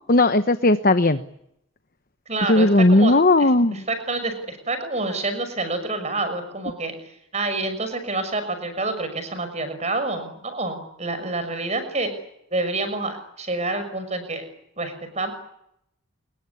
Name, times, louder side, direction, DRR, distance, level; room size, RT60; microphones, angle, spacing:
voice 1, 0.1-1.2 2.5-3.8, left 2 dB, 45° left, 10 dB, 1.1 m, -17 dB
voice 2, 2.3-6.9 7.3-12.1 12.5-14.4 14.8-15.3, right 2 dB, 35° right, 10 dB, 6.2 m, -28 dB
27.5 x 22.0 x 9.8 m, 0.77 s
head